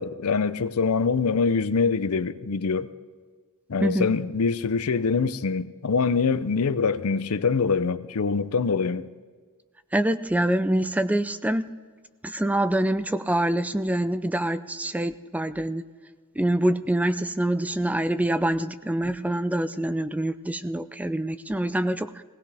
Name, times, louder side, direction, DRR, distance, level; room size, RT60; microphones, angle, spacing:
voice 1, 0.0-2.9 3.7-9.1, left 5 dB, 85° left, 0.6 m, -24 dB
voice 2, 3.8-4.1 9.9-11.7 12.2-15.8 16.4-22.2, right 1 dB, 5° right, 0.4 m, -25 dB
18.5 x 17.5 x 3.4 m
head